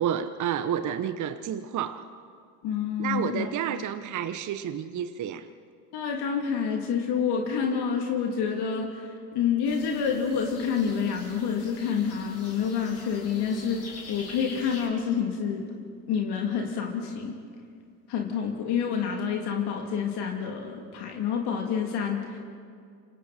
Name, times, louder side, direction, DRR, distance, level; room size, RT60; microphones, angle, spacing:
voice 1, 0.0-2.1 3.0-5.5, right 9 dB, 40° right, 10 dB, 1.1 m, -30 dB
voice 2, 2.6-3.5 5.9-15.6 16.1-17.4 18.1-22.4, left 7 dB, 55° left, 1 dB, 3.2 m, -28 dB
sound 1, 9.6-14.9, left 3 dB, 30° left, 5.3 m, -45 dB
27.5 x 26.0 x 4.5 m, 2.3 s
hypercardioid pair, 75°, 48 cm